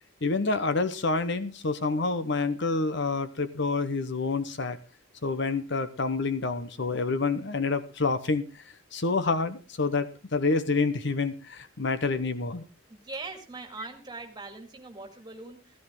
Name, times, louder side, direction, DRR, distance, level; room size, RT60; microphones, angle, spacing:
voice 1, 0.2-4.8 5.2-8.6 8.9-12.6, left 3 dB, 55° left, 12 dB, 1.0 m, -28 dB
voice 2, 12.9-15.8, right 3 dB, 20° right, 4 dB, 2.3 m, -41 dB
15.0 x 14.0 x 3.7 m, 0.31 s
head